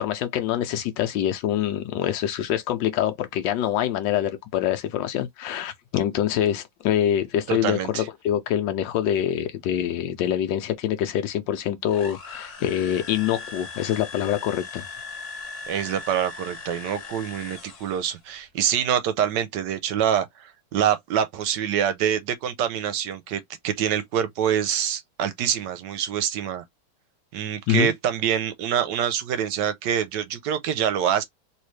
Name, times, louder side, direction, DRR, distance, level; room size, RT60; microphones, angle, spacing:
voice 1, 0.0-14.9 27.7-27.9, left 11 dB, 75° left, 1.2 m, -25 dB
voice 2, 7.5-8.0 15.7-26.6 27.3-31.2, right 9 dB, 75° right, 1.2 m, -25 dB
sound 1, 11.9-18.2, left 4 dB, 50° left, 1.2 m, -39 dB
3.4 x 2.8 x 3.1 m
omnidirectional pair, 2.0 m